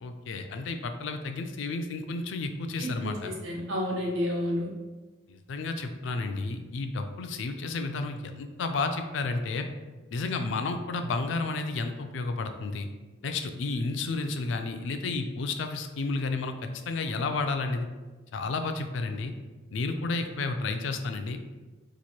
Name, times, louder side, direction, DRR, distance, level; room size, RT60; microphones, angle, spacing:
voice 1, 0.0-3.3 5.3-9.7 10.1-12.9 13.2-17.9 18.3-19.3 19.7-21.4, left 3 dB, 70° left, 7 dB, 0.4 m, -31 dB
voice 2, 2.8-4.7, left 1 dB, 80° right, -2 dB, 0.9 m, -30 dB
3.0 x 2.5 x 4.2 m, 1.2 s
head